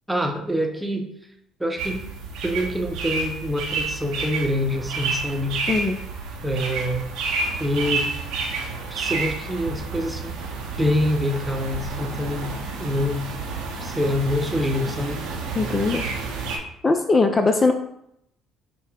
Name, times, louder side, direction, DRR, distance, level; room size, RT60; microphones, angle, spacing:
voice 1, 0.1-1.1 1.6-2.0 2.4-5.6 6.4-7.0 7.6-8.1 8.9-10.4 10.8-13.3 13.8-15.2, left 1 dB, 10° right, 2 dB, 0.8 m, -25 dB
sound 1, 1.8-16.6, right 4 dB, 70° right, 0.8 m, -30 dB
voice 2, 5.7-6.0 15.6-16.1 16.8-17.7, left 3 dB, 30° left, 6 dB, 0.4 m, -20 dB
5.7 x 2.1 x 3.5 m, 0.76 s
hypercardioid pair, 60°, 0 cm